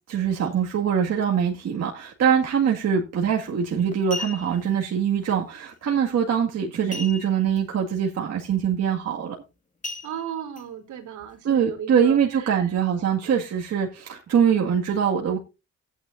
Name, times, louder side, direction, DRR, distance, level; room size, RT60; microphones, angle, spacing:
voice 1, 0.1-9.4 11.4-15.4, right 8 dB, 55° right, 2.0 m, -23 dB
sound 1, 3.2-3.5 3.9-4.7 6.9-7.6 7.9-8.0 8.5-8.7 9.8-10.6 11.2-11.3, left 3 dB, 25° left, 1.8 m, -36 dB
voice 2, 10.0-12.2 12.4-12.6, right 9 dB, 75° right, 3.3 m, -35 dB
15.0 x 9.3 x 2.6 m
cardioid pair, 90°, 30 cm